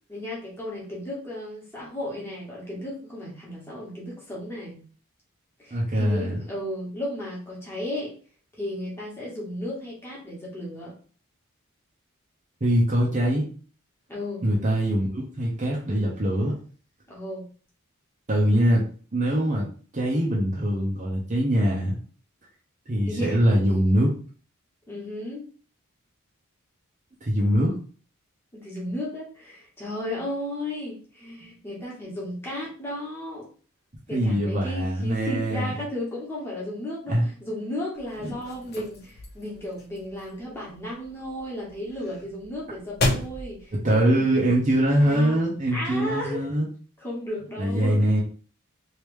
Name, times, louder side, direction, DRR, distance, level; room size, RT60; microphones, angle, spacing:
voice 1, 0.1-4.8 5.6-8.1 8.6-10.9 14.1-14.5 17.1-17.4 23.1-23.4 24.9-25.4 28.5-33.5 34.1-44.2 45.0-45.4 45.7-46.4 47.0-48.1, left 1 dB, 10° left, -6 dB, 1.3 m, -34 dB
voice 2, 5.7-6.4 12.6-13.4 14.4-16.5 18.3-19.7 19.9-22.0 22.9-24.1 27.2-27.8 31.4-31.5 34.1-35.7 37.1-37.2 38.2-38.3 43.8-46.7 47.6-48.2, equal, 35° right, -3 dB, 0.8 m, -23 dB
sound 1, 38.0-45.0, left 2 dB, 45° left, 0.9 m, -34 dB
3.2 x 2.8 x 3.2 m, 0.41 s
head